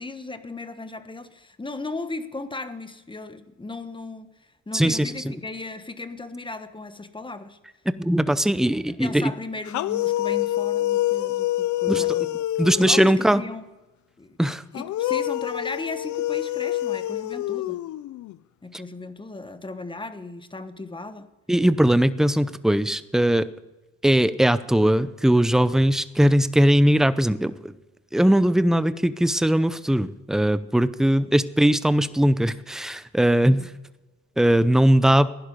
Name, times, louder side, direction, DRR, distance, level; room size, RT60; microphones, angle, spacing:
voice 1, 0.0-4.3 4.7-7.6 8.9-12.3 12.7-13.7 14.2-14.4 14.7-17.8 18.6-21.3 31.2-31.3 33.5-33.7, left 3 dB, 15° left, 10 dB, 1.2 m, -36 dB
voice 2, 4.7-5.3 8.0-9.3 11.9-12.0 12.6-13.4 14.4-14.6 21.5-23.5 24.0-27.7 28.1-33.7 34.4-35.3, right 1 dB, ahead, 14 dB, 0.6 m, -20 dB
sound 1, 9.7-13.4 14.7-18.4, left 15 dB, 75° left, 0.6 m, -26 dB
16.0 x 11.0 x 5.3 m, 1.1 s
cardioid pair, 90°, 30 cm